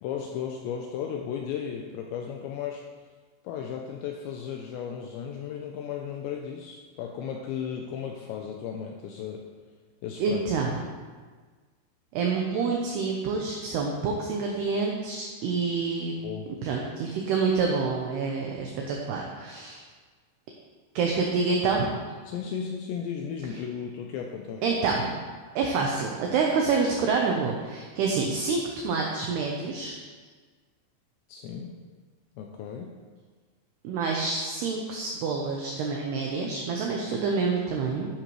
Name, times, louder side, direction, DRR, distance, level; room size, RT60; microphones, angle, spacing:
voice 1, 0.0-2.8 3.4-9.5 10.0-10.5 16.2-16.5 22.3-24.6 31.3-31.7 32.4-32.9, left 8 dB, 80° left, 1 dB, 2.6 m, -35 dB
voice 2, 10.2-10.8 12.1-16.1 16.6-19.8 21.0-21.9 24.6-25.2 25.6-29.9 33.8-38.1, right 4 dB, 80° right, 0 dB, 2.4 m, -27 dB
12.0 x 10.5 x 3.2 m, 1.5 s
omnidirectional pair, 5.7 m